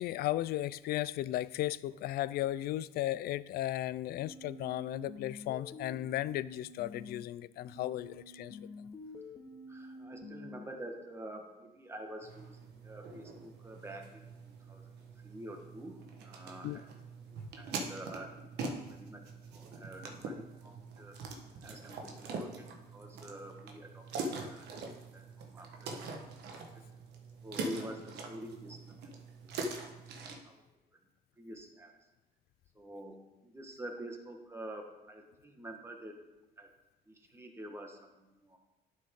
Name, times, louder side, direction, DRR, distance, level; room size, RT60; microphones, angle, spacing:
voice 1, 0.0-8.7 16.6-16.8, left 14 dB, 65° left, 18 dB, 0.4 m, -35 dB
sound 1, 4.2-7.2 7.6-10.7, left 2 dB, 30° left, 1.1 m, -49 dB
voice 2, 9.7-14.9 15.2-16.8 17.3-18.3 18.6-19.2 19.5-21.2 21.6-22.7 22.9-24.8 25.1-26.8 27.4-29.2 29.6-30.0 30.4-30.6 31.4-31.9 32.7-36.2 36.6-36.7 37.1-38.6, right 1 dB, 15° right, 3 dB, 1.5 m, -47 dB
sound 2, 12.2-30.4, right 3 dB, 75° right, 1.3 m, -43 dB
11.5 x 6.3 x 3.7 m, 1.0 s
cardioid pair, 110°, 17 cm